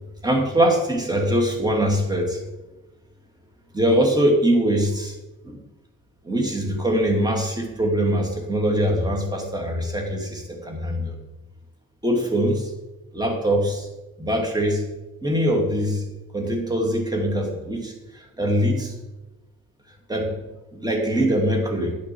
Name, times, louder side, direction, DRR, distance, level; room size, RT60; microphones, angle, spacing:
voice 1, 0.2-2.4 3.7-5.2 5.4-5.6 6.2-11.2 12.0-12.7 13.1-13.9 14.2-14.8 15.2-16.0 16.3-18.9 20.1-20.4 20.7-22.0, right 1 dB, 15° right, 1 dB, 2.4 m, -22 dB
10.5 x 8.0 x 4.5 m, 1.1 s
cardioid pair, 90°, 30 cm